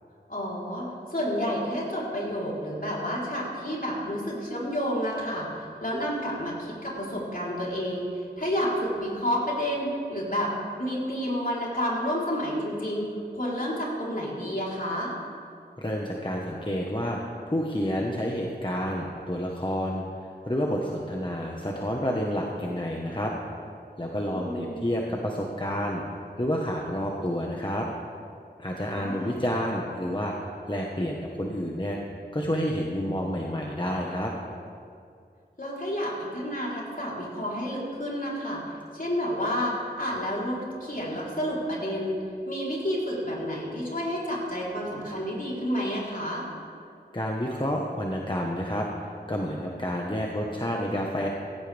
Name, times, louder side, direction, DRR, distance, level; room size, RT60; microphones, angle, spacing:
voice 1, 0.3-8.1 8.4-15.1 24.3-24.9 28.9-29.4 35.6-38.6 38.9-42.2 42.5-46.4, equal, 55° left, -5 dB, 4.0 m, -30 dB
voice 2, 15.8-17.2 17.5-20.0 20.5-23.3 24.0-26.0 26.4-27.9 28.6-30.3 30.7-32.0 32.3-34.3 47.1-51.3, equal, 25° left, -1 dB, 1.4 m, -29 dB
16.5 x 15.5 x 3.5 m, 2.4 s
wide cardioid pair, 40°, 18 cm